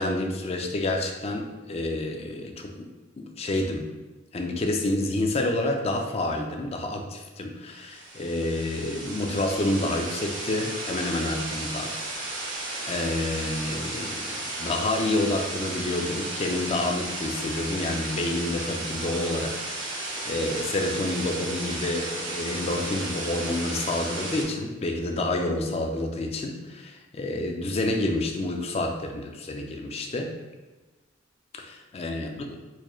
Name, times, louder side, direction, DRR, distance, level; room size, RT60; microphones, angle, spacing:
voice 1, 0.0-2.9 3.2-3.9 4.3-11.9 12.9-30.3 31.5-31.6 31.9-32.3, left 2 dB, 30° left, 3 dB, 0.4 m, -28 dB
sound 1, 7.8-24.4, right 2 dB, 70° right, 1.2 m, -34 dB
4.4 x 3.0 x 2.3 m, 1.2 s
head